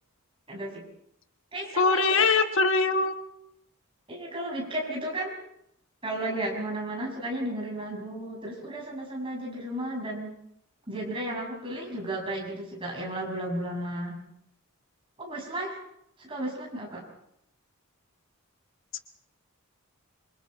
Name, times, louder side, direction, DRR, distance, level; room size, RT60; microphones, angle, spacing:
voice 1, 0.5-0.8 1.5-2.3 4.1-5.4 6.0-10.3 10.9-14.2 15.2-15.8 16.2-17.0, right 1 dB, 25° right, 0 dB, 6.4 m, -33 dB
voice 2, 1.8-3.2, left 4 dB, 60° left, 7 dB, 1.3 m, -22 dB
27.0 x 25.0 x 4.3 m, 0.75 s
head